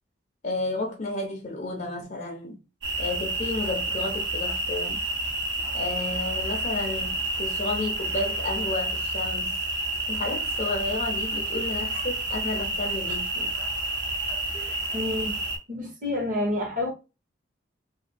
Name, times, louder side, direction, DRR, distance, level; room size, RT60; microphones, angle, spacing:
voice 1, 0.4-2.6 3.0-5.0 5.7-9.6 10.1-13.5, left 2 dB, 40° left, 0.5 m, -32 dB
sound 1, 2.8-15.6, right 1 dB, 75° right, 1.1 m, -29 dB
voice 2, 14.5-15.4 15.7-16.9, left 1 dB, 45° right, 1.1 m, -29 dB
2.7 x 2.5 x 3.7 m
head